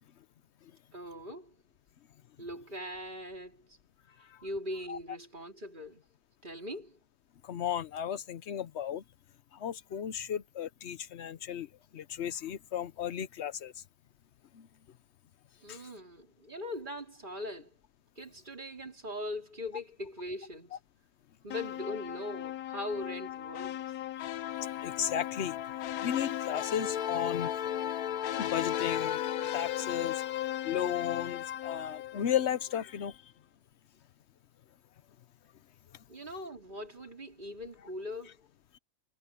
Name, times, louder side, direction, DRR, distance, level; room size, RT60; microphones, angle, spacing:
voice 1, 0.9-1.6 2.4-3.8 4.2-6.1 6.4-7.0 15.6-17.8 18.2-20.8 21.4-23.8 36.1-38.5, left 1 dB, 35° right, 3.5 m, -41 dB
voice 2, 7.4-9.0 9.5-11.7 11.9-13.7 14.5-14.7 15.7-15.8 24.8-25.6 26.0-27.5 28.3-29.3 29.5-30.3 30.6-33.1, left 9 dB, 55° left, 1.0 m, -34 dB
sound 1, 21.5-32.7, left 11 dB, 80° left, 1.2 m, -36 dB
omnidirectional pair, 1.5 m